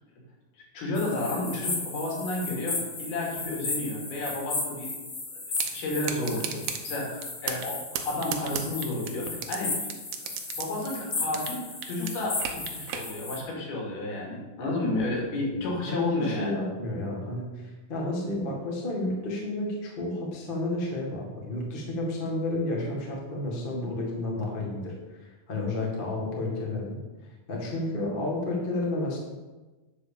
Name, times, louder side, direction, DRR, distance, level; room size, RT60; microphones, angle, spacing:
voice 1, 0.7-4.9 5.7-9.7 10.6-16.6, left 2 dB, 85° left, -3 dB, 4.4 m, -31 dB
sound 1, 0.9-13.4, left 3 dB, 45° left, 3.4 m, -35 dB
sound 2, 5.6-5.7 6.0-6.8 7.2-7.7 8.0-9.6 9.9-11.6 11.8-13.1, right 9 dB, 85° right, 2.8 m, -33 dB
voice 2, 15.9-27.0 27.5-29.2, left 2 dB, 25° left, -2 dB, 1.1 m, -31 dB
10.0 x 4.8 x 7.0 m, 1.2 s
omnidirectional pair, 4.3 m